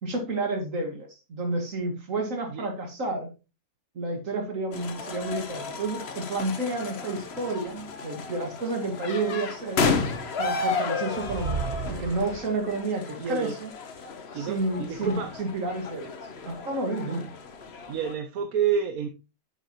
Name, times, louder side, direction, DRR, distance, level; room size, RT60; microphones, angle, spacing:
voice 1, 0.0-3.3 3.9-9.8 10.4-13.7 14.3-16.1 16.5-17.3, right 2 dB, 65° right, 3 dB, 2.4 m, -30 dB
sound 1, 4.7-18.1, left 4 dB, 50° left, 1.2 m, -33 dB
sound 2, 11.2-12.8, right 7 dB, 50° right, 0.6 m, -33 dB
voice 2, 13.2-13.5 14.3-15.3 17.1-17.2 17.9-19.1, right 7 dB, 85° right, 7 dB, 1.3 m, -29 dB
9.4 x 7.2 x 3.0 m, 0.28 s
omnidirectional pair, 1.5 m